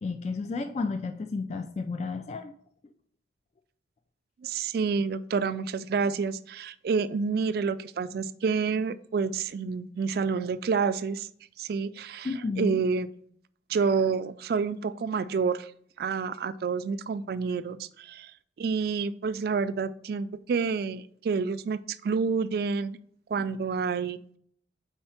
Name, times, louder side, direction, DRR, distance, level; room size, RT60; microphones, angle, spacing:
voice 1, 0.0-2.5 12.2-12.8, left 4 dB, 40° left, 8 dB, 0.3 m, -32 dB
voice 2, 4.4-11.3 11.6-13.1 13.7-15.7 16.0-18.3 18.6-23.0 23.3-24.4, right 5 dB, 60° right, 13 dB, 0.3 m, -29 dB
4.6 x 4.4 x 5.6 m, 0.63 s
head